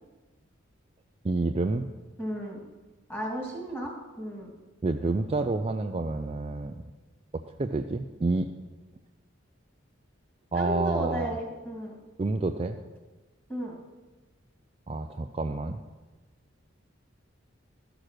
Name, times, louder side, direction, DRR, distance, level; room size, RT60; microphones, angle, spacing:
voice 1, 1.2-1.9 4.8-6.8 7.3-8.5 10.5-11.4 12.2-12.8 14.9-15.8, right 3 dB, 30° right, 6 dB, 0.4 m, -29 dB
voice 2, 2.2-2.6 3.1-4.5 10.5-11.9 13.5-13.8, right 1 dB, 10° left, -1 dB, 2.2 m, -34 dB
13.0 x 6.6 x 6.1 m, 1.2 s
head